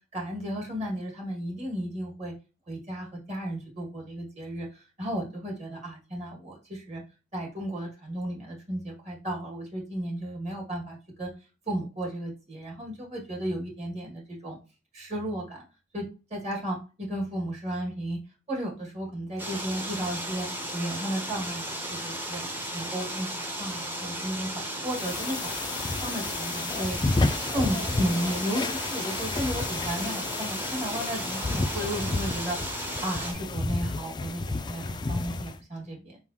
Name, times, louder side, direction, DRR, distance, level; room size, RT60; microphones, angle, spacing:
voice 1, 0.1-2.3 2.7-7.0 7.3-11.3 11.7-14.6 14.9-15.6 15.9-18.2 18.5-20.5 20.7-22.4 22.7-25.4 25.8-27.0 27.5-32.6 33.0-36.2, right 1 dB, 35° right, -1 dB, 1.9 m, -34 dB
sound 1, 19.4-33.3, right 1 dB, 10° right, 0.7 m, -35 dB
sound 2, 24.9-35.6, left 3 dB, 25° left, 0.3 m, -31 dB
4.9 x 3.6 x 2.8 m, 0.31 s
head